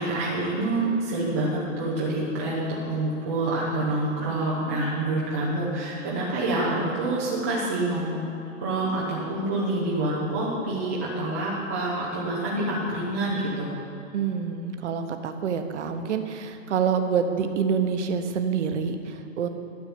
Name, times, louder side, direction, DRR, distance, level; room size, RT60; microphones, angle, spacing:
voice 1, 0.0-8.2 8.6-13.7, right 2 dB, 10° right, -7 dB, 0.5 m, -27 dB
voice 2, 14.1-19.5, right 6 dB, 60° right, 6 dB, 1.1 m, -27 dB
12.5 x 5.7 x 8.4 m, 2.8 s
hypercardioid pair, 175°, 40 cm